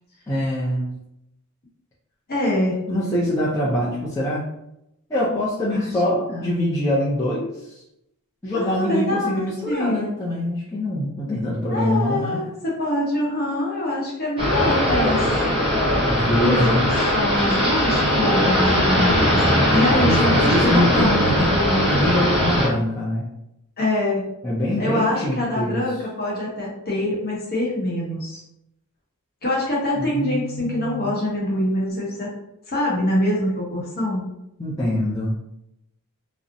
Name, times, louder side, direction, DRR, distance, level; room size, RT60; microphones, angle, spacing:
voice 1, 0.3-1.0 2.9-4.4 5.1-7.8 8.4-12.5 16.0-16.8 19.9-23.3 24.4-25.8 29.9-31.1 34.6-35.4, left 1 dB, 15° left, -8 dB, 0.4 m, -24 dB
voice 2, 2.3-2.8 5.7-6.0 6.4-6.7 8.5-10.1 11.7-15.2 16.4-16.8 17.1-22.0 23.8-24.3 24.8-28.4 29.4-32.4 32.7-34.2, left 1 dB, 45° left, -4 dB, 0.8 m, -24 dB
sound 1, 14.4-22.7, equal, 25° right, 0.6 m, -20 dB
2.5 x 2.0 x 2.5 m, 0.83 s
head